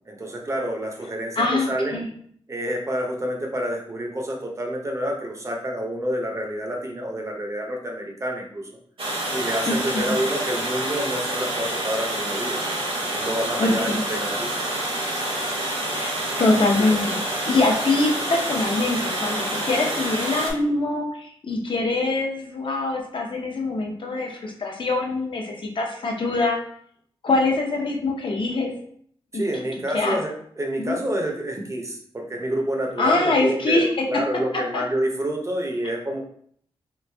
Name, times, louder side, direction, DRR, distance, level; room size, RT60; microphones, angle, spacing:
voice 1, 0.1-2.0 2.5-8.7 9.3-12.6 13.0-14.6 29.3-36.2, right 1 dB, 30° right, 0 dB, 0.6 m, -28 dB
voice 2, 1.4-2.1 9.7-10.1 13.6-14.0 15.9-16.1 16.4-26.6 27.2-28.7 29.3-29.5 29.9-30.2 30.8-31.0 33.0-34.2 34.7-34.8, left 2 dB, 55° left, 1 dB, 0.7 m, -24 dB
Water, 9.0-20.5, right 1 dB, 60° right, 1.0 m, -27 dB
3.1 x 2.5 x 3.3 m, 0.62 s
wide cardioid pair, 140°, 10 cm